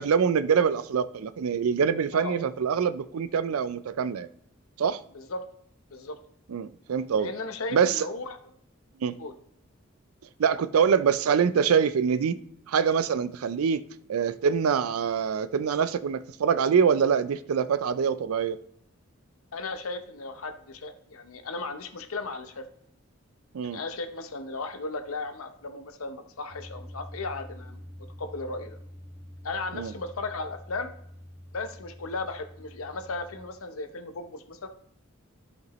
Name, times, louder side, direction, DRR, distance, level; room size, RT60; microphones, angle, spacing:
voice 1, 0.0-4.3 4.8-5.0 6.5-7.3 7.7-8.1 9.0-9.1 10.4-12.4 12.7-13.8 14.1-18.6 23.5-23.8 29.7-29.9, right 6 dB, 90° right, 0.4 m, -24 dB
voice 2, 5.1-5.5 5.9-6.2 7.2-8.4 9.2-9.3 19.5-22.6 23.6-27.8 28.2-28.8 29.4-30.9 31.5-34.7, left 3 dB, 85° left, 0.8 m, -36 dB
sound 1, 26.5-33.5, equal, 25° right, 1.3 m, -46 dB
13.0 x 5.2 x 3.0 m
head